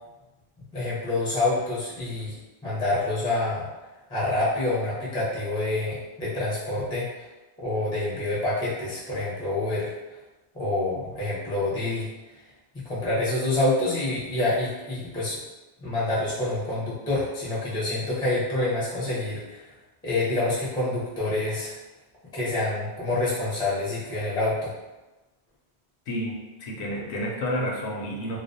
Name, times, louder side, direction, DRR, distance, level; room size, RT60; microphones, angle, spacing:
voice 1, 0.7-2.3 2.6-3.7 4.1-7.2 7.6-9.9 10.5-12.1 12.8-15.4 15.8-19.7 20.0-21.7 22.3-24.7, left 2 dB, 5° left, -9 dB, 0.4 m, -27 dB
voice 2, 26.1-28.4, equal, 80° left, -2 dB, 0.8 m, -30 dB
2.4 x 2.0 x 2.5 m, 1.1 s
omnidirectional pair, 1.1 m